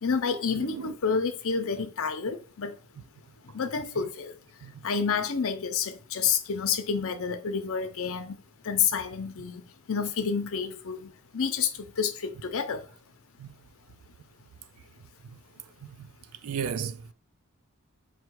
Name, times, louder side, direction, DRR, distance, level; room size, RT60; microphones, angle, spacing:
voice 1, 0.0-2.8 3.4-8.4 8.6-12.9, left 6 dB, 65° left, 0.7 m, -29 dB
voice 2, 0.5-0.9 4.6-4.9 13.4-13.5 16.0-16.1 16.4-17.1, right 7 dB, 70° right, 0.4 m, -34 dB
4.4 x 2.2 x 4.6 m
head